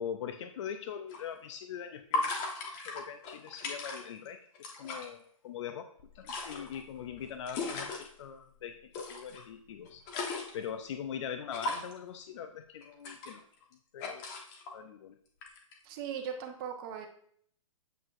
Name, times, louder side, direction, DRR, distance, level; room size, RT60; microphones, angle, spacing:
voice 1, 0.0-2.5 2.8-4.4 4.8-5.9 6.1-10.0 10.5-13.4 13.9-14.3 14.7-15.2, left 8 dB, 55° left, 9 dB, 0.5 m, -42 dB
sound 1, 1.1-1.2 2.1-4.3 4.5-5.1 6.0-8.1 8.9-9.4 9.8-10.7 11.5-12.0 12.8-13.7 14.0-14.7 15.4-15.7, left 3 dB, 30° left, 1.1 m, -37 dB
voice 2, 15.8-17.1, right 8 dB, 40° right, 3 dB, 1.1 m, -38 dB
8.0 x 4.7 x 2.5 m, 0.63 s
hypercardioid pair, 140°, 18 cm